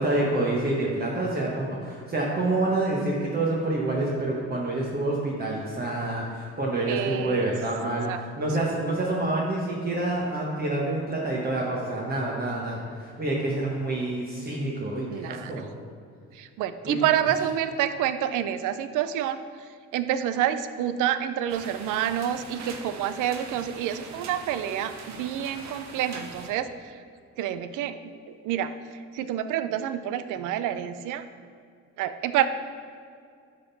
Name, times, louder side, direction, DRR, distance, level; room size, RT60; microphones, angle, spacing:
voice 1, 0.0-8.1 8.4-15.7 16.8-17.0, right 2 dB, 30° right, -4 dB, 1.2 m, -27 dB
voice 2, 6.9-7.5 8.1-8.2 15.1-15.6 16.3-19.4 19.9-27.0 27.4-28.0 28.3-31.2 32.0-32.5, right 10 dB, 90° right, 12 dB, 0.5 m, -28 dB
sound 1, 21.5-26.5, right 4 dB, 65° right, 0.9 m, -42 dB
11.5 x 3.8 x 4.1 m, 2.2 s
cardioid pair, 90°, 30 cm